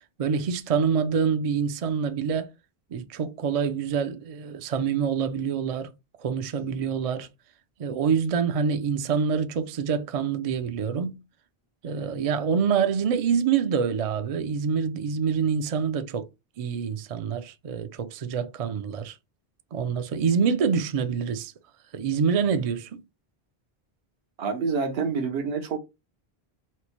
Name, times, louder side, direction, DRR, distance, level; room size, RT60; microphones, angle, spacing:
voice 1, 0.2-2.5 2.9-5.9 6.2-7.3 7.8-11.2 11.8-16.3 16.6-19.2 19.7-21.5 21.9-23.0, right 6 dB, 50° right, 0.4 m, -26 dB
voice 2, 24.4-25.8, right 5 dB, 75° right, 0.9 m, -27 dB
4.4 x 2.0 x 2.9 m
omnidirectional pair, 1.0 m